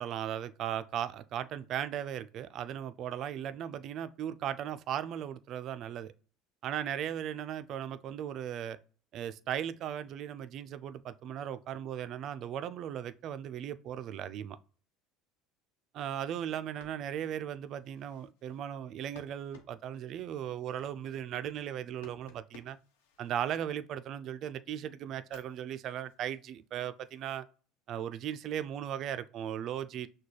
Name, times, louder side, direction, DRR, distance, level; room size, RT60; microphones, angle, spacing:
voice 1, 0.0-6.1 6.6-8.8 9.1-14.6 15.9-22.8 23.2-27.5 27.9-30.1, right 10 dB, 50° right, 0.3 m, -37 dB
sound 1, 16.6-24.2 24.7-27.3, left 5 dB, 85° left, 0.9 m, -62 dB
6.0 x 2.2 x 3.2 m
supercardioid pair, 105°, 0 cm